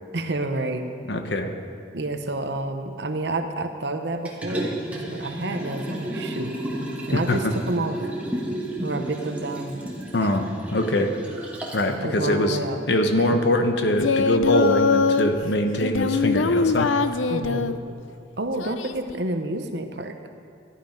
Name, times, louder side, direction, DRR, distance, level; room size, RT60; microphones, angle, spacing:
voice 1, 0.1-0.9 1.9-6.5 7.1-8.0 8.8-9.8 10.2-10.4 12.0-12.8 13.2-13.4 17.3-17.8 18.4-20.1, right 2 dB, 60° right, 6 dB, 0.9 m, -29 dB
voice 2, 1.1-1.5 7.1-7.5 10.1-10.5 10.7-11.1 11.7-12.6 12.9-16.9, left 1 dB, 60° left, 6 dB, 1.0 m, -23 dB
Liquid, 4.2-11.9 12.3-12.4, right 1 dB, 5° right, 1.8 m, -32 dB
Singing, 13.9-15.3 15.8-17.8 18.6-19.1, left 4 dB, 85° left, 0.5 m, -22 dB
13.5 x 11.5 x 5.2 m, 2.4 s
head